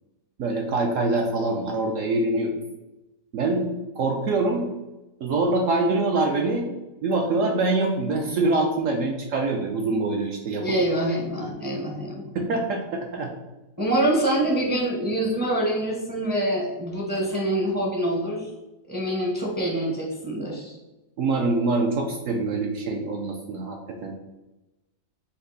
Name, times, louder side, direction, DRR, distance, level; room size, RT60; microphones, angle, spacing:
voice 1, 0.4-2.6 3.3-3.7 4.0-4.6 5.2-6.7 7.0-10.8 11.4-11.5 12.3-13.3 21.2-24.1, right 2 dB, 75° right, 2 dB, 0.7 m, -24 dB
voice 2, 10.6-12.3 13.8-18.5 18.9-20.8, right 1 dB, 20° right, -3 dB, 0.5 m, -25 dB
5.1 x 2.6 x 3.9 m, 1.0 s
omnidirectional pair, 1.8 m